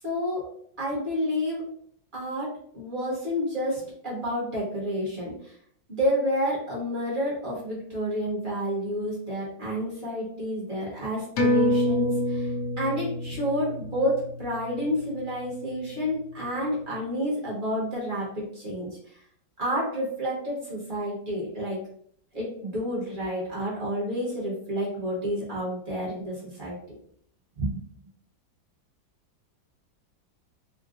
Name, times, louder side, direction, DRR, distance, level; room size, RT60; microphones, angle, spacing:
voice 1, 0.0-0.5 0.8-1.6 2.1-5.5 6.0-12.5 12.8-19.0 19.6-21.8 22.3-26.8 27.6-27.8, equal, 30° right, -6 dB, 1.1 m, -29 dB
sound 1, 11.4-16.3 16.7-16.8, left 1 dB, 70° left, 0.8 m, -28 dB
3.7 x 2.3 x 2.5 m, 0.64 s
omnidirectional pair, 2.1 m